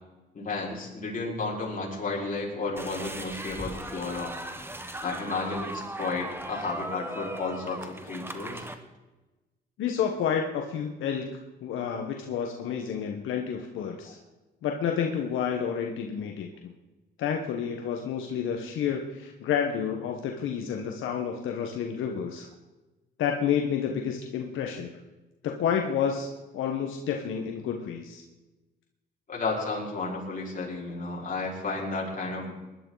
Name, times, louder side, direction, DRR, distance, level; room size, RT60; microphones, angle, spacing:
voice 1, 0.3-4.3 5.0-8.6 29.3-32.5, left 3 dB, 40° left, -3 dB, 5.0 m, -32 dB
sound 1, 2.8-8.7, right 1 dB, 10° right, 1.4 m, -38 dB
voice 2, 9.8-11.3 11.6-14.2 14.6-16.7 17.2-22.5 23.2-25.0 25.4-26.3 26.5-28.2, left 7 dB, 80° left, 2 dB, 1.3 m, -30 dB
20.0 x 11.5 x 4.0 m, 1.1 s
cardioid pair, 90°, 20 cm